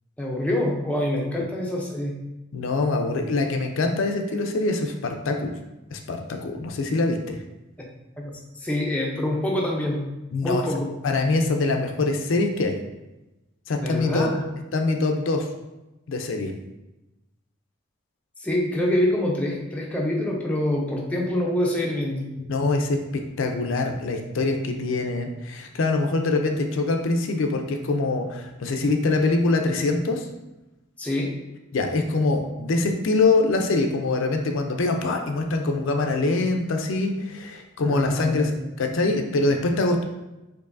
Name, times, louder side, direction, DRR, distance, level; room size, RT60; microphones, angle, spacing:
voice 1, 0.2-2.2 8.2-10.0 10.4-10.9 13.8-14.4 18.4-22.3 31.0-31.3 37.8-38.5, left 1 dB, 5° left, -2 dB, 0.4 m, -26 dB
voice 2, 2.5-5.5 5.9-7.4 10.3-10.6 11.0-12.7 13.7-14.3 14.7-15.5 16.1-16.5 22.4-23.0 23.4-30.3 31.7-40.0, left 3 dB, 70° left, 4 dB, 0.4 m, -24 dB
4.6 x 2.6 x 2.5 m, 1.0 s
head